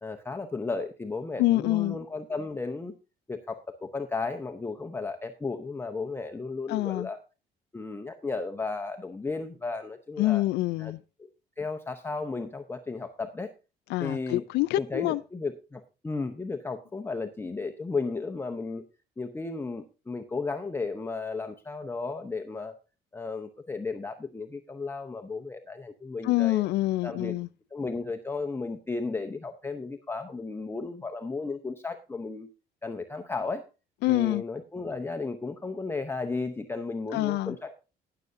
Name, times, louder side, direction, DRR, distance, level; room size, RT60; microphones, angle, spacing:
voice 1, 0.0-2.9 3.3-7.2 7.7-10.4 10.8-10.9 11.2-11.3 11.6-13.5 14.0-14.4 14.8-18.8 19.2-22.7 23.1-26.6 27.0-27.4 27.7-32.5 32.8-33.6 34.1-37.7, left 3 dB, 15° left, 0.8 m, -34 dB
voice 2, 1.4-2.0 6.7-7.1 10.2-11.0 13.9-15.2 26.2-27.5 34.0-34.4 37.1-37.6, left 18 dB, 80° left, 0.4 m, -26 dB
19.0 x 6.8 x 2.6 m
cardioid pair, 110°, 17 cm